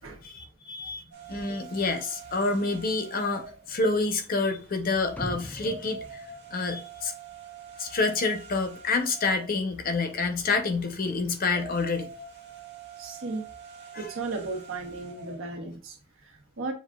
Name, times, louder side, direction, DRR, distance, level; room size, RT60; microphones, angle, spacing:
voice 1, 0.2-1.0 1.3-7.1 7.8-12.1, left 3 dB, 45° left, 0.7 m, -28 dB
sound 1, 1.1-15.6, right 4 dB, 60° right, 1.3 m, -46 dB
sound 2, 5.2-7.3 7.7-7.8, equal, 10° left, 0.3 m, -41 dB
voice 2, 13.0-13.4 14.0-16.7, right 3 dB, 85° right, 1.1 m, -36 dB
7.0 x 2.5 x 2.3 m
head